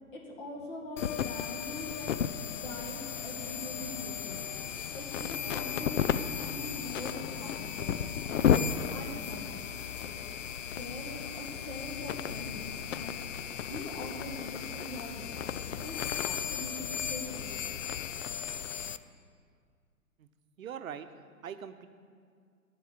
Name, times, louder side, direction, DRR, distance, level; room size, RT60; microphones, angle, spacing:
voice 1, 0.1-4.4 4.9-8.5 8.9-9.6 10.0-10.2 10.8-13.1 13.6-17.8, left 1 dB, 35° left, 0 dB, 1.9 m, -43 dB
sound 1, 1.0-19.0, left 8 dB, 55° left, 0.6 m, -34 dB
sound 2, 2.6-9.1, equal, 10° left, 0.4 m, -57 dB
voice 2, 20.6-21.9, right 8 dB, 65° right, 10 dB, 0.9 m, -42 dB
13.5 x 4.9 x 8.0 m, 2.1 s
hypercardioid pair, 130°, 44 cm